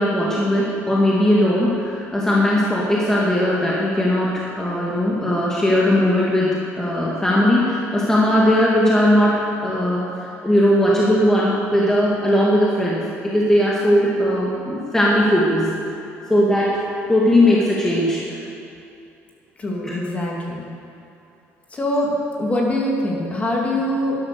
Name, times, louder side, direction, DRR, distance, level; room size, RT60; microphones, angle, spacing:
voice 1, 0.0-15.7 16.3-16.8 17.1-18.4 19.8-19.9, left 1 dB, 10° left, -5 dB, 2.1 m, -18 dB
voice 2, 19.6-20.7 21.7-22.1 22.4-24.2, left 1 dB, 25° left, -2 dB, 2.7 m, -23 dB
12.0 x 11.5 x 6.7 m, 2.7 s
cardioid pair, 120°, 5 cm